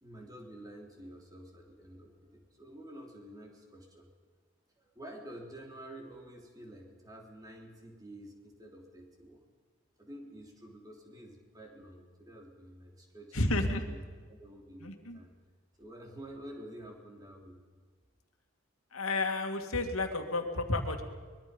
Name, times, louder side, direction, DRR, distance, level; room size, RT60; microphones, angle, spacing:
voice 1, 0.0-4.1 4.8-9.5 10.0-13.4 13.8-14.0 14.3-15.3 15.8-17.6, right 1 dB, 15° right, 1 dB, 3.5 m, -49 dB
voice 2, 13.3-13.8 14.8-15.2 18.9-21.0, left 2 dB, 85° left, 5 dB, 2.4 m, -31 dB
24.0 x 22.0 x 5.4 m, 1.5 s
head